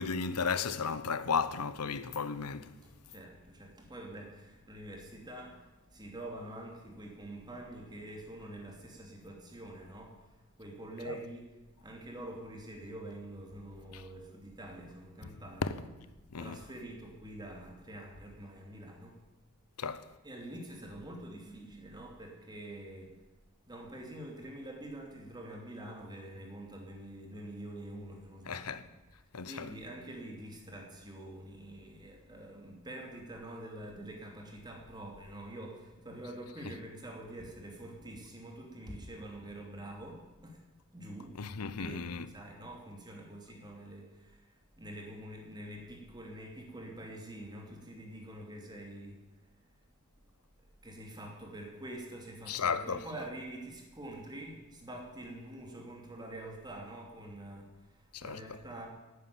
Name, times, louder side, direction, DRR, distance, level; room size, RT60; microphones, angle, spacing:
voice 1, 0.0-2.7 11.1-11.2 13.9-14.0 15.6-15.7 16.3-16.6 19.8-20.0 28.5-28.8 29.3-29.7 41.4-42.3 52.5-53.0 58.1-58.4, left 5 dB, 90° left, 0.8 m, -34 dB
voice 2, 2.8-15.8 16.4-19.2 19.8-20.0 20.2-23.2 23.7-28.9 29.5-40.6 40.9-49.2 50.8-58.9, right 1 dB, 20° right, 2.9 m, -46 dB
11.5 x 9.5 x 9.6 m
head